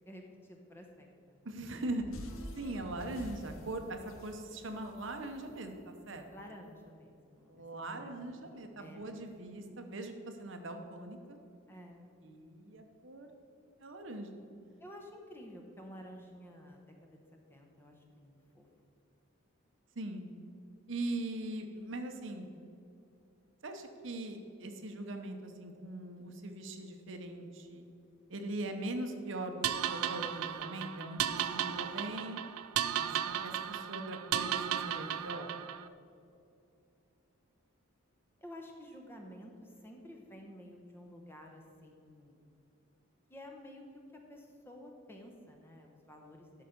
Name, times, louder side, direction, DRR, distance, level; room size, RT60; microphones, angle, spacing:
voice 1, 0.0-1.4 6.3-7.6 7.9-9.1 11.7-12.1 14.8-17.2 17.5-18.7 38.4-42.4 43.3-44.0 44.3-46.6, left 1 dB, 10° left, 1 dB, 0.9 m, -52 dB
voice 2, 1.4-2.1 2.5-6.2 7.5-11.4 12.2-13.3 13.8-14.4 20.0-20.3 20.9-22.5 23.6-27.8 28.3-32.4 32.9-35.5, right 2 dB, 60° right, 5 dB, 0.9 m, -41 dB
sound 1, 2.0-6.4, equal, 70° left, 0.8 m, -49 dB
sound 2, 29.6-35.9, right 10 dB, 85° right, 0.4 m, -35 dB
12.5 x 5.8 x 5.2 m, 2.7 s
head